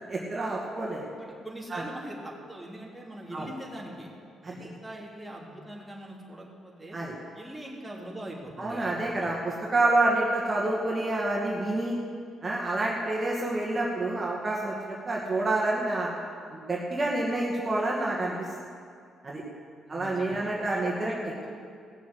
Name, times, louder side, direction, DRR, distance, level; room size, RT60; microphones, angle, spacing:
voice 1, 0.1-1.0 1.7-1.8 3.3-3.5 4.4-4.7 6.9-7.1 8.6-12.0 12.4-16.1 16.5-18.5 19.2-19.4 19.9-21.1, right 2 dB, 30° right, -4 dB, 2.3 m, -28 dB
voice 2, 1.1-4.1 4.4-7.0 7.3-9.3 18.3-18.4 19.8-21.5, right 1 dB, ahead, -4 dB, 3.2 m, -42 dB
17.0 x 7.2 x 8.1 m, 2.3 s
cardioid pair, 90°, 0 cm